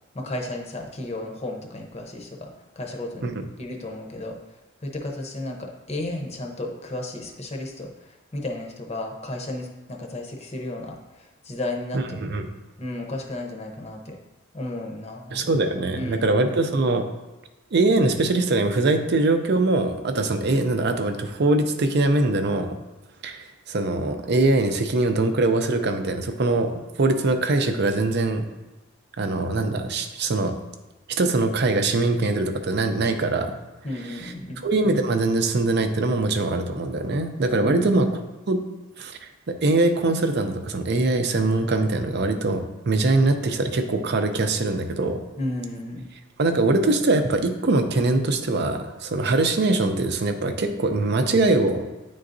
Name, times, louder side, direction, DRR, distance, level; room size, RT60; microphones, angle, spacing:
voice 1, 0.1-2.5 2.8-3.3 3.6-4.3 4.8-12.2 12.8-14.2 14.5-15.5 16.0-16.3 33.8-34.6 37.6-37.9 45.4-46.1, left 1 dB, 30° left, 2 dB, 0.8 m, -33 dB
voice 2, 11.9-12.4 15.3-17.0 17.7-22.8 23.2-28.4 29.2-30.6 31.1-33.6 34.1-34.3 34.6-38.1 38.5-38.6 39.0-39.2 39.5-45.2 46.4-51.9, right 2 dB, 55° right, 7 dB, 0.5 m, -22 dB
9.5 x 3.8 x 2.6 m, 1.1 s
head